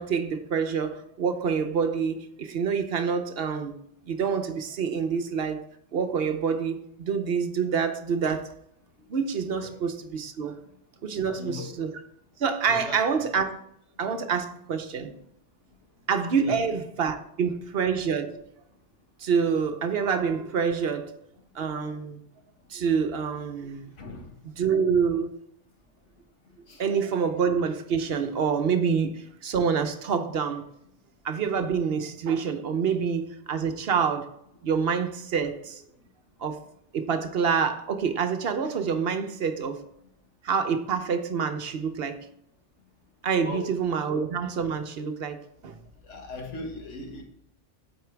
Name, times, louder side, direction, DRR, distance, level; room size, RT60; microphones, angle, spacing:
voice 1, 0.0-3.7 4.1-5.6 5.9-8.5 9.1-10.6 11.0-11.9 12.4-13.6 14.0-15.1 16.1-18.4 19.2-21.1 21.5-22.2 22.7-23.9 24.6-25.3 26.8-30.6 31.2-34.3 34.6-35.8 36.4-36.6 36.9-39.8 40.4-42.2 43.2-45.4 45.6-45.8, right 6 dB, 60° right, 0.9 m, -27 dB
voice 2, 11.2-11.7 12.7-13.0 16.4-16.6 24.0-24.3 26.7-26.8 43.4-43.7 46.0-47.2, left 3 dB, 80° left, 1.7 m, -38 dB
8.3 x 4.5 x 4.6 m
omnidirectional pair, 1.2 m